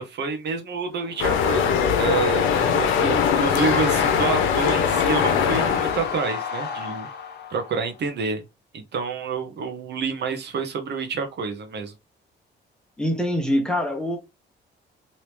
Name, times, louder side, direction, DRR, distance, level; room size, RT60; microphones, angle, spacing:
voice 1, 0.0-7.1 7.5-8.4 8.7-11.9, right 5 dB, 60° right, 0.8 m, -28 dB
sound 1, 0.9-8.0, left 6 dB, 55° left, 0.9 m, -32 dB
sound 2, 1.2-6.2, left 7 dB, 90° left, 0.7 m, -21 dB
voice 2, 13.0-14.2, equal, 5° left, 1.0 m, -24 dB
3.0 x 2.8 x 3.2 m
cardioid pair, 90°, 20 cm